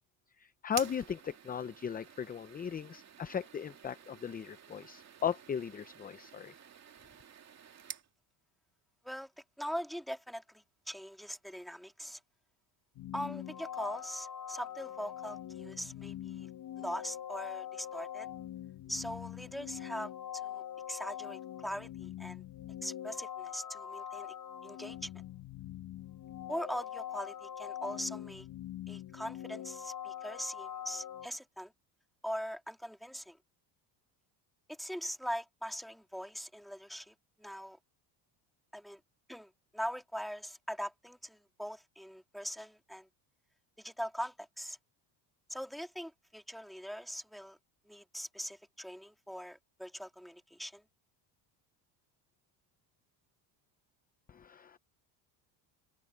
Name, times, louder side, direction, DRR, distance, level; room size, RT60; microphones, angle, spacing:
voice 1, 0.4-6.5 54.3-54.8, left 8 dB, 20° left, 0.6 m, -37 dB
sound 1, 0.7-8.1, right 8 dB, 35° right, 2.7 m, -50 dB
voice 2, 9.6-12.2 13.1-16.5 16.8-18.3 18.9-22.4 22.8-24.4 24.6-25.1 26.5-28.5 28.9-31.7 32.2-33.4 34.7-37.8 38.7-39.0 39.3-43.1 43.8-44.8 45.5-47.6 47.9-50.8, equal, ahead, 2.4 m, -41 dB
sound 2, 12.9-31.3, left 11 dB, 50° left, 2.3 m, -43 dB
open air
cardioid pair, 135°, 45 cm